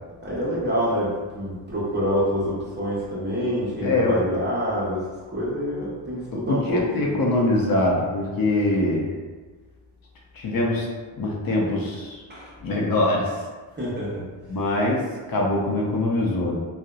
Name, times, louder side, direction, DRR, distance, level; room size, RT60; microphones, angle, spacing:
voice 1, 0.2-7.2 12.3-12.5 13.8-14.2, equal, 25° right, -7 dB, 0.8 m, -27 dB
voice 2, 3.8-4.2 6.5-9.1 10.4-10.9 11.2-12.2 12.6-13.3 14.5-15.0 15.3-16.6, left 2 dB, 50° left, -2 dB, 0.5 m, -23 dB
2.7 x 2.0 x 2.3 m, 1.4 s
cardioid pair, 95°, 46 cm